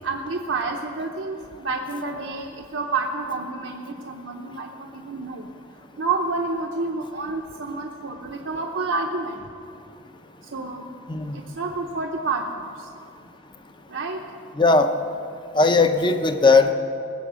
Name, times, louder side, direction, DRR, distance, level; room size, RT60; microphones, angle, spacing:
voice 1, 0.0-5.5 6.0-9.4 10.5-10.9 11.3-12.9 13.9-14.2, right 3 dB, 75° right, 1 dB, 0.8 m, -29 dB
voice 2, 14.6-14.9 15.5-16.7, left 3 dB, 25° left, 7 dB, 0.6 m, -17 dB
20.5 x 7.7 x 6.2 m, 2.5 s
head